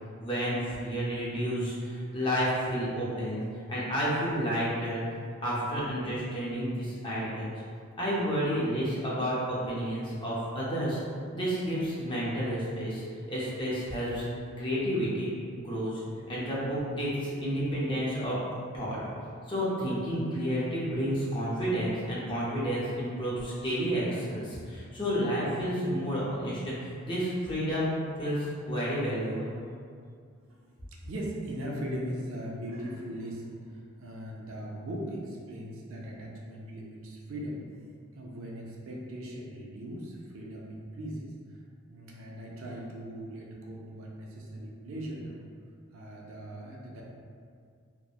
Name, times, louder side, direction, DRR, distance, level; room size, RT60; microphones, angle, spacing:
voice 1, 0.2-3.4 3.7-5.0 5.4-7.6 8.0-11.0 11.3-14.2 14.6-15.3 15.6-16.0 16.3-18.4 18.7-19.0 19.5-29.5, equal, 20° left, -7 dB, 0.5 m, -30 dB
voice 2, 12.3-12.7 17.0-17.1 24.9-25.0 30.6-37.6 38.1-41.6 41.9-45.4 45.9-47.0, equal, 65° right, -2 dB, 0.4 m, -39 dB
2.9 x 2.0 x 2.3 m, 2.2 s
head